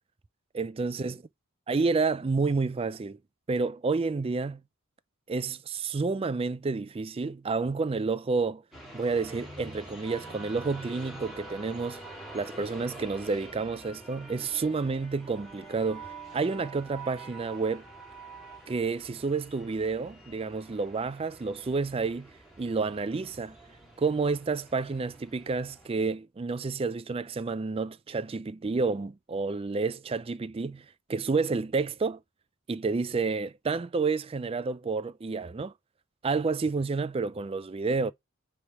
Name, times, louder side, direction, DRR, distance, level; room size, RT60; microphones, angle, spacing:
voice 1, 0.5-1.2 1.7-3.2 3.5-4.6 5.3-8.6 8.9-12.0 12.3-17.9 18.7-22.3 22.6-23.6 24.0-32.2 32.7-35.7 36.2-38.1, right 4 dB, 25° right, 0.3 m, -30 dB
sound 1, 8.7-25.9, right 2 dB, ahead, 3.1 m, -46 dB
9.3 x 3.4 x 4.2 m
head